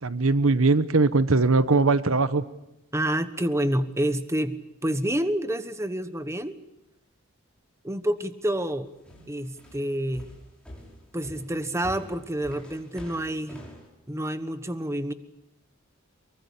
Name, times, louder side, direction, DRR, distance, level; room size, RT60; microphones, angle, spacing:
voice 1, 0.0-2.4, right 3 dB, 75° right, 14 dB, 1.1 m, -21 dB
voice 2, 2.9-6.5 7.8-8.9 9.3-10.3 11.1-13.6 14.1-15.1, right 1 dB, 15° right, 11 dB, 1.1 m, -28 dB
sound 1, 9.1-13.9, equal, 5° left, 6.0 m, -45 dB
24.0 x 23.5 x 8.4 m, 0.90 s
head